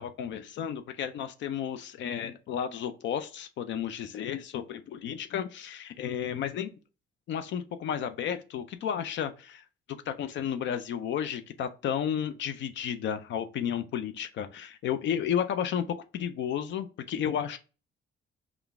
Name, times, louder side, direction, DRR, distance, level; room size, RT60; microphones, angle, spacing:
voice 1, 0.0-6.7 7.3-17.6, left 9 dB, 70° left, 0.4 m, -32 dB
3.7 x 2.3 x 3.5 m
cardioid pair, 90°, 20 cm